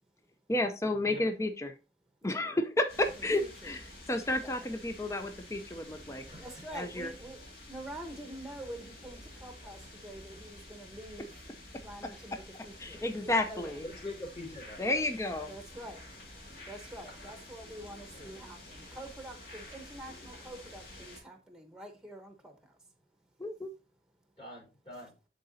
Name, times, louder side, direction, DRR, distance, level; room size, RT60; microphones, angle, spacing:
voice 1, 0.5-1.7 2.2-6.2 6.7-7.1 12.0-12.1 12.8-13.8 14.8-15.5 23.4-23.7, left 1 dB, 15° left, 0.5 m, -31 dB
sound 1, 2.9-21.2, left 1 dB, 55° left, 2.2 m, -50 dB
voice 2, 3.2-3.7 4.4-4.7 6.4-11.3 11.8-13.7 15.5-16.0 16.6-22.8, right 1 dB, 5° right, 1.0 m, -46 dB
voice 3, 6.3-6.6 13.8-14.8 17.0-17.3 24.4-25.1, left 1 dB, 35° left, 4.0 m, -44 dB
11.5 x 3.8 x 2.7 m
head